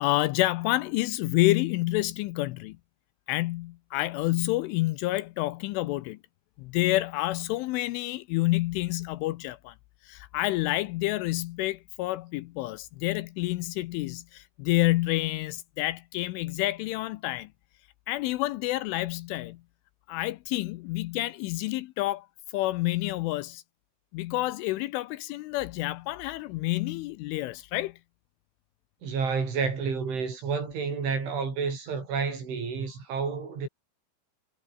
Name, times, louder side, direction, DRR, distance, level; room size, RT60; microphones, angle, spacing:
voice 1, 0.0-2.8 3.3-6.2 6.6-9.7 10.1-17.5 18.1-19.6 20.1-22.3 22.5-23.6 24.1-28.0, left 18 dB, 85° left, 3.1 m, -28 dB
voice 2, 29.0-33.7, right 5 dB, 65° right, 9.2 m, -30 dB
omnidirectional pair, 6.0 m